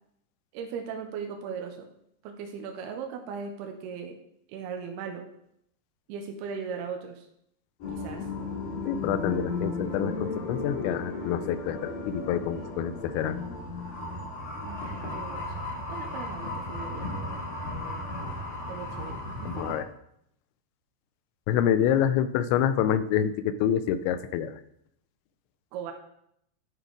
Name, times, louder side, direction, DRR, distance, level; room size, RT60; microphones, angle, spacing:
voice 1, 0.5-1.8 2.2-4.2 4.5-5.3 6.1-7.3 7.9-8.2 14.6-17.1 18.7-19.8 25.7-25.9, right 6 dB, 75° right, 4 dB, 2.7 m, -38 dB
sound 1, 7.8-19.8, left 2 dB, 50° left, 4.7 m, -35 dB
voice 2, 8.9-13.4 19.4-19.9 21.5-24.6, left 9 dB, 90° left, 13 dB, 2.9 m, -27 dB
11.0 x 6.7 x 4.7 m, 0.74 s
omnidirectional pair, 5.1 m